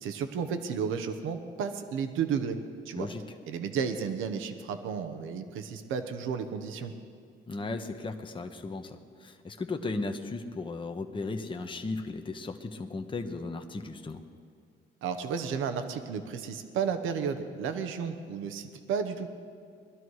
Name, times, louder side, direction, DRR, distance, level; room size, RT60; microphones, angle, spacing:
voice 1, 0.0-2.6 2.9-3.1 3.4-6.9 15.0-19.3, right 6 dB, 90° right, 8 dB, 1.0 m, -32 dB
voice 2, 7.5-14.2, left 3 dB, 25° left, 5 dB, 1.0 m, -36 dB
20.5 x 12.5 x 4.8 m, 2.3 s
cardioid pair, 90°, 20 cm